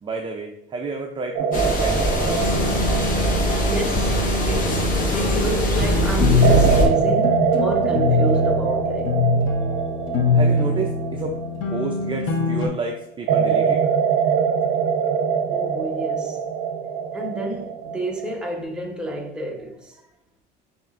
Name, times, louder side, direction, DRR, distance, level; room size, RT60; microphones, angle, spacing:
voice 1, 0.0-2.4 10.3-11.4 11.7-13.8, right 4 dB, 25° right, 0.5 m, -30 dB
sound 1, 1.4-5.6 6.4-12.4 13.3-18.6, right 7 dB, 75° right, 0.6 m, -24 dB
sound 2, 1.5-6.9, equal, 40° left, 1.2 m, -22 dB
sound 3, 2.2-12.7, left 3 dB, 70° left, 0.9 m, -23 dB
voice 2, 3.7-4.2 4.5-9.2 15.5-16.4 17.1-20.1, right 1 dB, 5° right, 0.9 m, -30 dB
6.7 x 3.0 x 2.5 m
cardioid pair, 130°, 21 cm